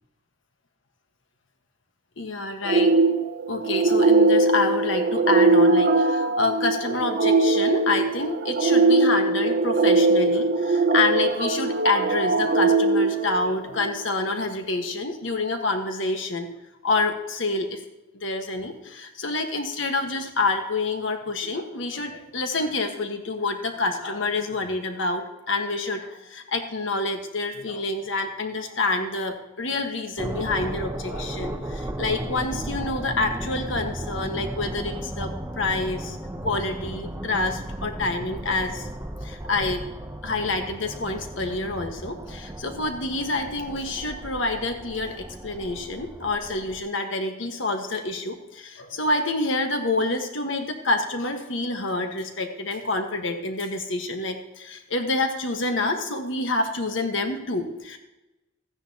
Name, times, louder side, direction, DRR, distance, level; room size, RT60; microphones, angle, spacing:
voice 1, 2.2-2.9 3.5-16.5 16.8-17.8 18.1-36.2 36.4-38.9 39.2-39.8 40.2-58.0, left 3 dB, 70° left, 5 dB, 1.4 m, -27 dB
sound 1, 2.7-14.0, right 3 dB, 50° right, 0.8 m, -21 dB
sound 2, 30.2-46.8, right 1 dB, 15° right, 0.6 m, -35 dB
14.5 x 9.6 x 2.9 m, 1.0 s
head